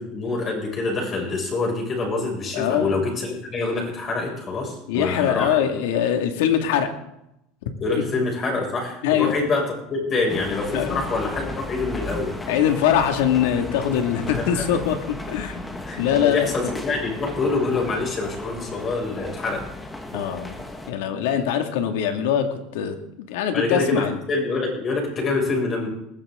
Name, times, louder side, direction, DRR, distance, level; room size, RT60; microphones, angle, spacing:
voice 1, 0.0-5.6 7.8-12.3 14.4-14.6 15.9-19.6 23.5-25.9, left 3 dB, 30° left, 0 dB, 6.4 m, -26 dB
voice 2, 2.5-2.9 4.9-6.9 9.0-9.3 10.7-11.0 12.5-15.7 16.0-16.8 20.1-24.2, left 9 dB, 90° left, 5 dB, 2.3 m, -23 dB
sound 1, 10.3-20.9, left 1 dB, 10° left, 1.8 m, -35 dB
20.0 x 15.5 x 3.9 m, 0.83 s
cardioid pair, 150°, 0 cm